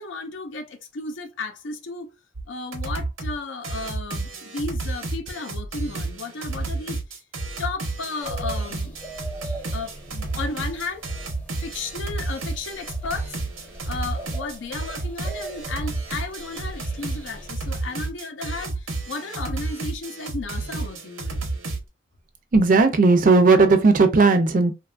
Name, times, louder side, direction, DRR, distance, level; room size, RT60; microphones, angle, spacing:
voice 1, 0.0-2.2 2.5-7.2 7.6-9.0 9.7-11.1 11.5-13.4 13.9-21.4, left 3 dB, 70° left, 0.5 m, -34 dB
sound 1, 2.4-2.5 2.7-3.4 3.6-21.8, right 3 dB, 90° right, 0.8 m, -31 dB
sound 2, 8.2-17.5, right 1 dB, 5° left, 0.6 m, -42 dB
voice 2, 22.5-24.7, right 3 dB, 45° right, 0.4 m, -16 dB
2.8 x 2.3 x 2.3 m
head